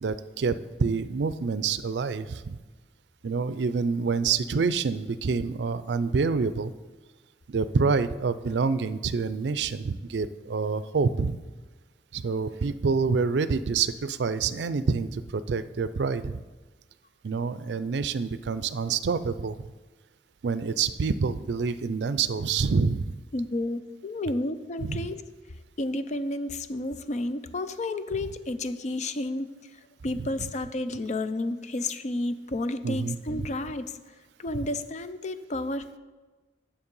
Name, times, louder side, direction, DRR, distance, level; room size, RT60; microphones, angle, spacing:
voice 1, 0.0-2.6 3.2-6.7 7.5-11.4 12.1-16.4 17.2-19.6 20.4-23.1 24.8-25.0 30.4-30.5 32.8-33.5, right 5 dB, 70° right, 14 dB, 0.4 m, -27 dB
voice 2, 23.3-25.2 25.8-29.5 30.0-33.9 34.4-36.0, left 2 dB, 40° left, 11 dB, 0.5 m, -31 dB
9.6 x 7.2 x 5.4 m, 1.3 s
head